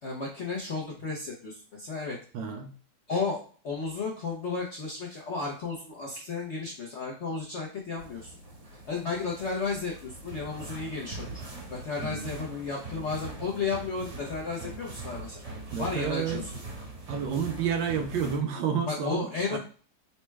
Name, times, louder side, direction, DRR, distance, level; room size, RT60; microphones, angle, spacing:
voice 1, 0.0-2.2 3.1-8.3 8.9-11.3 11.7-15.5 15.8-16.5 18.8-19.6, left 4 dB, 60° left, -2 dB, 0.7 m, -33 dB
voice 2, 2.3-2.7 12.0-12.3 15.7-16.4 17.1-19.6, right 7 dB, 80° right, 5 dB, 1.4 m, -30 dB
sound 1, 8.0-18.4, right 2 dB, 50° right, 1.8 m, -42 dB
4.2 x 2.1 x 4.5 m, 0.41 s
omnidirectional pair, 2.0 m